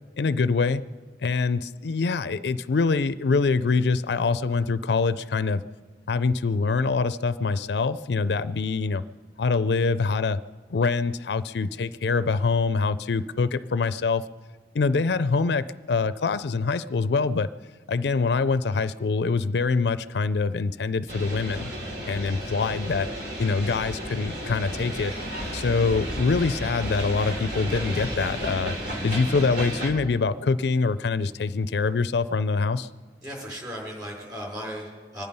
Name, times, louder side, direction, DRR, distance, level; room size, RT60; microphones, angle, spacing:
voice 1, 0.2-0.8 1.2-5.6 6.1-9.0 9.4-10.4 10.7-14.2 14.7-17.5 17.9-21.7 22.0-23.1 23.4-25.1 25.5-28.8 29.0-32.9, left 4 dB, 70° left, 14 dB, 0.4 m, -24 dB
sound 1, 21.1-29.9, equal, 75° right, 3.8 m, -33 dB
voice 2, 33.2-35.2, equal, 20° right, -3 dB, 5.0 m, -36 dB
24.5 x 10.5 x 5.4 m, 1.4 s
head